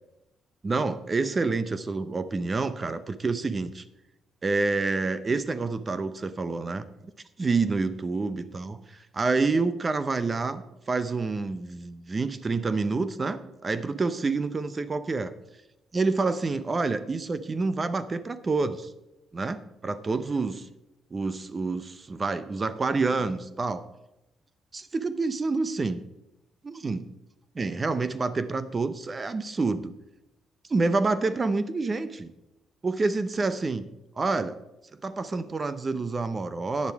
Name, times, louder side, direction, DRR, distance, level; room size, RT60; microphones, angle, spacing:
voice 1, 0.6-3.8 4.4-6.8 7.4-15.3 15.9-18.9 19.3-20.7 21.1-23.8 24.7-26.0 26.6-27.0 27.5-29.9 30.7-32.3 32.8-33.9 34.2-34.6 35.0-36.9, right 3 dB, 30° right, 13 dB, 0.7 m, -28 dB
10.5 x 9.8 x 4.7 m, 0.94 s
cardioid pair, 90°, 0 cm